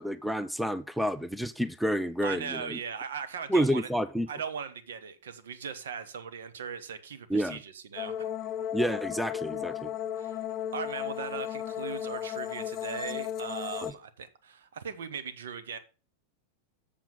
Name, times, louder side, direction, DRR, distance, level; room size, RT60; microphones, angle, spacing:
voice 1, 0.0-2.8 3.5-4.3 7.3-7.6 8.7-9.9 13.8-13.9, equal, ahead, 0.5 m, -29 dB
voice 2, 2.2-3.9 4.3-8.3 10.2-10.4 10.7-15.8, right 6 dB, 65° right, 1.1 m, -39 dB
sound 1, 8.0-13.9, left 10 dB, 30° left, 0.7 m, -35 dB
7.4 x 6.9 x 5.3 m
figure-of-eight pair, 90°, 0 cm